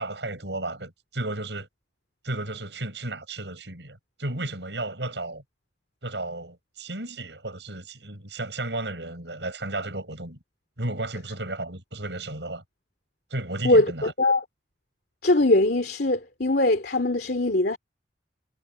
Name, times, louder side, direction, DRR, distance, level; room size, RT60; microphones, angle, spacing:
voice 1, 0.0-1.7 2.2-5.4 6.0-10.4 10.8-12.6 13.3-14.1, right 2 dB, 75° right, 7.3 m, -33 dB
voice 2, 13.6-14.4 15.2-17.8, left 2 dB, 60° left, 3.1 m, -21 dB
head